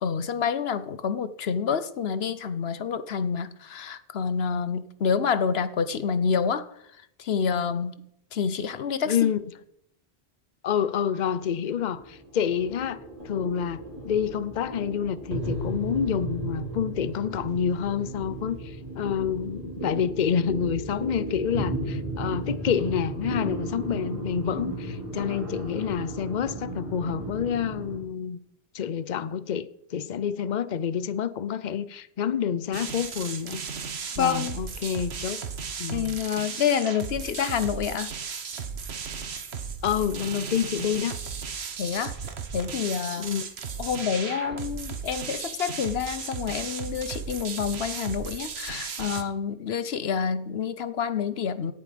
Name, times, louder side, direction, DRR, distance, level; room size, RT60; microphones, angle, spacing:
voice 1, 0.0-6.7 7.2-9.3 34.2-34.6 35.9-38.1 41.8-42.2 42.5-43.3 43.8-51.7, left 7 dB, 70° left, 1.0 m, -28 dB
voice 2, 9.0-9.4 10.6-28.4 28.7-33.6 34.2-35.4 35.8-36.2 39.8-41.2 43.2-43.5, left 8 dB, 50° left, 0.8 m, -28 dB
sound 1, 11.2-28.0, right 1 dB, 30° right, 4.4 m, -35 dB
sound 2, 32.7-49.2, right 6 dB, 75° right, 1.4 m, -35 dB
17.5 x 10.5 x 5.2 m
omnidirectional pair, 1.1 m